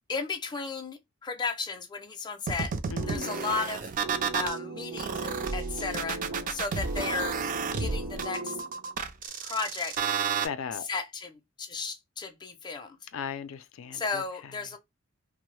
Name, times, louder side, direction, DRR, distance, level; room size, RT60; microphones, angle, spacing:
voice 1, 0.1-2.7 3.1-3.9 4.3-6.2 6.5-7.4 7.8-8.6 9.4-10.0 10.9-13.0 13.9-14.8, left 4 dB, 20° left, 0.4 m, -34 dB
sound 1, 2.5-4.5 5.0-10.5, right 6 dB, 40° right, 0.4 m, -32 dB
voice 2, 2.9-3.3 10.3-10.9 13.1-14.6, left 6 dB, 85° left, 0.4 m, -37 dB
sound 2, 3.0-9.0, right 3 dB, 80° right, 0.8 m, -38 dB
3.0 x 2.0 x 3.1 m
head